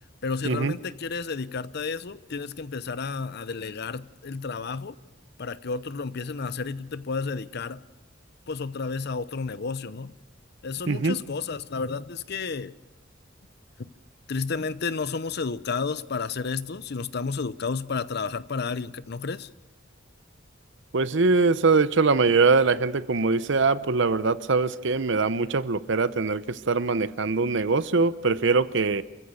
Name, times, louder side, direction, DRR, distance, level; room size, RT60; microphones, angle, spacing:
voice 1, 0.2-5.0 5.4-7.8 8.5-10.1 10.6-12.8 14.3-19.5, left 4 dB, 55° left, 0.7 m, -31 dB
voice 2, 20.9-29.0, right 4 dB, 65° right, 0.8 m, -22 dB
29.0 x 15.0 x 7.0 m
head